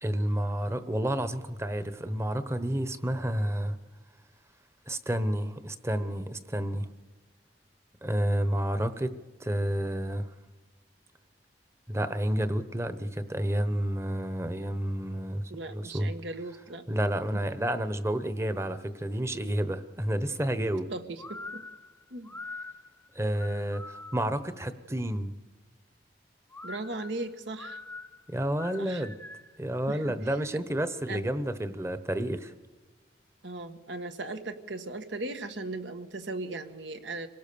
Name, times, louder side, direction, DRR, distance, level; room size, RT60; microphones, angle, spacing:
voice 1, 0.0-3.8 4.9-6.9 8.0-10.3 11.9-15.4 15.7-16.1 16.9-20.9 23.1-25.3 28.3-29.1 29.6-32.5, right 1 dB, 15° right, 12 dB, 1.0 m, -30 dB
voice 2, 15.5-16.8 17.3-17.4 20.9-21.6 22.1-22.4 26.6-27.8 28.8-29.1 29.9-30.3 31.1-31.3 33.4-37.3, right 2 dB, 85° right, 8 dB, 1.6 m, -38 dB
sound 1, 21.2-24.5 26.5-29.6, left 3 dB, 10° left, 0.6 m, -44 dB
26.0 x 17.5 x 6.9 m, 1.3 s
head